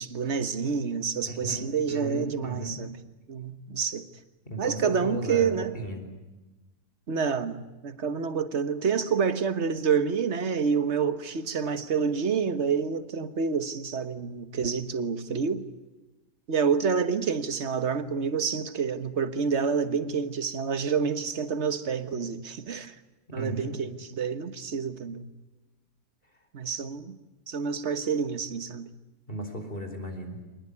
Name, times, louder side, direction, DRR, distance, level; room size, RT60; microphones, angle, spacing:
voice 1, 0.0-2.9 3.3-4.1 4.6-5.7 7.1-15.7 16.5-22.9 23.3-25.3 26.5-27.2 27.5-28.9, right 6 dB, 50° right, 1.6 m, -28 dB
voice 2, 1.3-2.8 4.5-6.0 23.3-23.7 29.3-30.4, right 1 dB, 35° left, 4.4 m, -35 dB
25.5 x 20.0 x 9.8 m
omnidirectional pair, 1.5 m